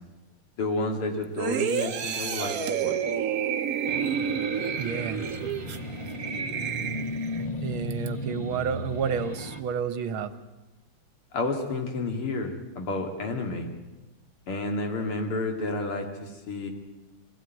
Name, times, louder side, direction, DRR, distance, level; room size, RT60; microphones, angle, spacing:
voice 1, 0.6-3.0 11.3-13.7 14.5-16.7, left 2 dB, 90° left, 4 dB, 3.3 m, -30 dB
sound 1, 1.4-7.5 7.9-8.1, right 8 dB, 55° right, 1.2 m, -30 dB
sound 2, 3.9-9.6, left 1 dB, 20° left, 1.1 m, -35 dB
voice 2, 4.8-5.2 7.6-10.3, right 7 dB, 75° right, 12 dB, 1.9 m, -30 dB
23.5 x 16.0 x 9.3 m, 1.1 s
omnidirectional pair, 2.3 m